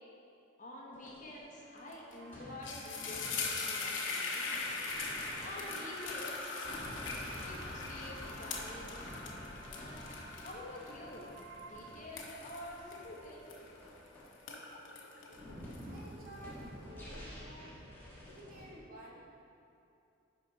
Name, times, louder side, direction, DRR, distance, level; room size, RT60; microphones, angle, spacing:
voice 1, 0.6-4.6 5.4-6.5 7.4-9.1 9.7-11.3 11.6-13.6, left 1 dB, 40° left, -3 dB, 1.2 m, -48 dB
sound 1, 0.9-18.7, equal, 10° left, 1.6 m, -50 dB
sound 2, 1.9-2.1 2.4-14.0 14.3-16.3, left 4 dB, 65° left, 1.0 m, -41 dB
sound 3, 2.2-11.7, right 3 dB, 70° right, 1.1 m, -57 dB
voice 2, 15.7-17.7 18.3-19.2, right 1 dB, 45° right, -5 dB, 1.5 m, -52 dB
11.0 x 4.9 x 4.1 m, 2.7 s
head